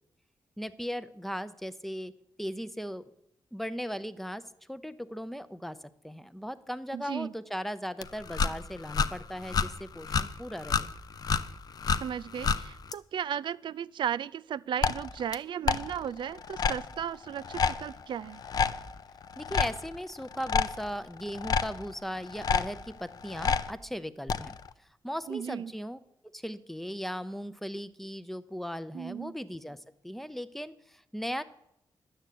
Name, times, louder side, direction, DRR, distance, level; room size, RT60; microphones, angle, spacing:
voice 1, 0.6-2.1 2.4-3.0 3.5-4.4 4.7-5.8 6.0-10.9 19.4-24.6 25.0-26.0 26.3-29.8 30.0-31.4, equal, 5° left, 13 dB, 0.6 m, -37 dB
voice 2, 6.9-7.3 12.0-18.4 25.3-25.7 28.9-29.4, right 9 dB, 75° right, 18 dB, 0.4 m, -35 dB
sound 1, 8.0-12.9 14.8-15.3 15.7-23.7 24.3-24.7, left 5 dB, 55° left, 0.5 m, -30 dB
11.0 x 7.8 x 8.4 m, 0.79 s
wide cardioid pair, 140°, 8 cm